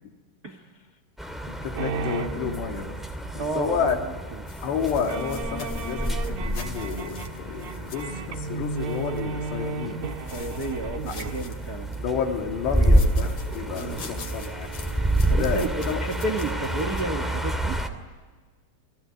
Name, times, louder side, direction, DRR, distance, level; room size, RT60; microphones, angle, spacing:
voice 1, 0.4-0.9 3.3-4.4 10.3-12.0 13.7-14.0 15.3-17.8, right 2 dB, 85° right, 8 dB, 0.8 m, -32 dB
sound 1, 1.2-17.9, right 1 dB, ahead, 1.2 m, -29 dB
voice 2, 1.5-3.0 3.3-4.0 4.6-10.0 12.0-14.7 15.4-16.0, left 6 dB, 90° left, 3 dB, 4.9 m, -30 dB
sound 2, 1.8-3.3 3.8-3.9 4.1-4.2 4.9-17.6, right 4 dB, 60° right, 3.2 m, -36 dB
sound 3, 4.5-9.2 10.0-12.1 12.6-17.0, left 5 dB, 45° left, 3.1 m, -46 dB
29.5 x 20.5 x 9.8 m, 1.4 s
omnidirectional pair, 4.8 m